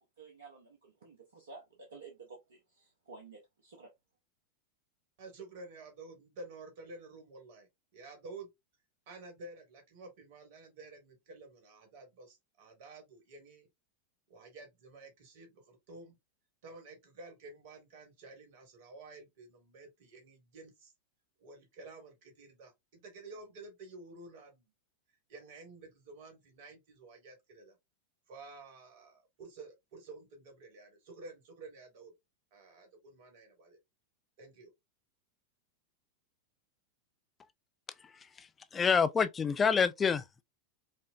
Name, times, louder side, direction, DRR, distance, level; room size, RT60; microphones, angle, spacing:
voice 1, 0.2-3.9, right 4 dB, 65° right, 0.8 m, -52 dB
voice 2, 5.2-8.5 9.1-13.7 14.3-16.2 16.6-20.9 21.4-24.7 25.3-27.7 28.3-32.1 32.5-33.8 34.4-34.7, right 3 dB, 50° right, 1.4 m, -51 dB
voice 3, 38.4-40.4, left 6 dB, 20° left, 0.3 m, -28 dB
5.0 x 2.0 x 2.4 m
figure-of-eight pair, 90°, 0 cm